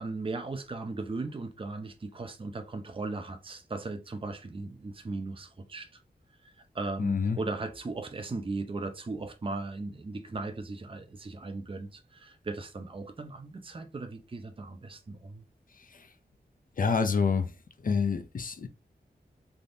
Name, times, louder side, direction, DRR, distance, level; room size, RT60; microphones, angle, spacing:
voice 1, 0.0-5.9 6.7-15.4, right 3 dB, 30° right, 0.5 m, -37 dB
voice 2, 7.0-7.4 16.8-17.5 17.8-18.7, left 5 dB, 50° left, 0.4 m, -27 dB
3.4 x 2.6 x 2.6 m
wide cardioid pair, 95°, 18 cm